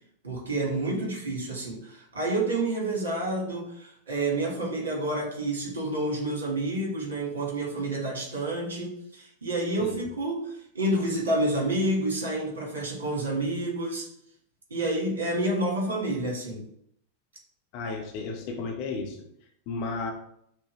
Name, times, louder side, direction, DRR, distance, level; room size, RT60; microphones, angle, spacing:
voice 1, 0.2-14.1 14.7-16.6, right 1 dB, 65° right, -2 dB, 1.6 m, -29 dB
voice 2, 17.7-19.2 19.7-20.1, left 4 dB, 45° left, 3 dB, 0.7 m, -33 dB
5.9 x 2.2 x 3.1 m, 0.70 s
figure-of-eight pair, 90°, 0 cm